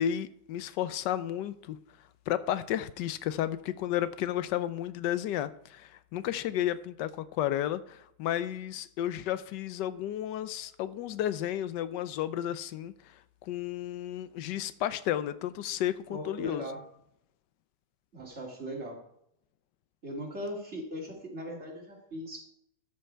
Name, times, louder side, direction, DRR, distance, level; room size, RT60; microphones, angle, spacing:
voice 1, 0.0-1.8 2.3-12.9 13.5-16.6, left 11 dB, 90° left, 1.3 m, -32 dB
voice 2, 16.1-16.8 18.1-19.0 20.0-22.5, equal, 40° right, 2.9 m, -39 dB
13.0 x 6.8 x 4.5 m
omnidirectional pair, 1.8 m